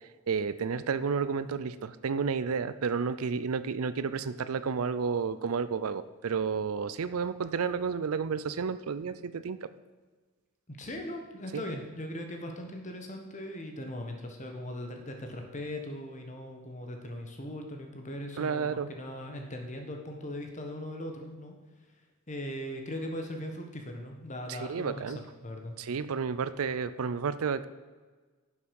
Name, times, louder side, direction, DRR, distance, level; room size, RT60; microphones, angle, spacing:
voice 1, 0.3-9.7 11.5-11.6 18.4-18.9 24.5-25.2 25.8-27.7, right 5 dB, 75° right, 14 dB, 0.5 m, -31 dB
voice 2, 10.7-21.5 22.3-25.1 25.4-25.7, left 1 dB, 35° left, 3 dB, 1.3 m, -39 dB
11.0 x 7.2 x 5.3 m, 1.4 s
head